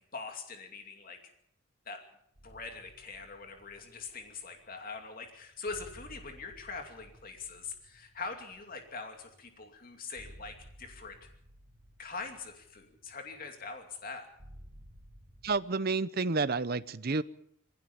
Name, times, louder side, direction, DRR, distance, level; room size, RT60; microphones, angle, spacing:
voice 1, 0.1-1.2 1.9-2.0 2.4-11.3 12.0-14.3, left 4 dB, 40° left, 4 dB, 2.6 m, -43 dB
sound 1, 2.4-15.6, equal, 75° right, 4.4 m, -56 dB
voice 2, 15.4-17.2, right 4 dB, 45° right, 16 dB, 0.7 m, -30 dB
22.5 x 16.0 x 7.0 m, 0.73 s
head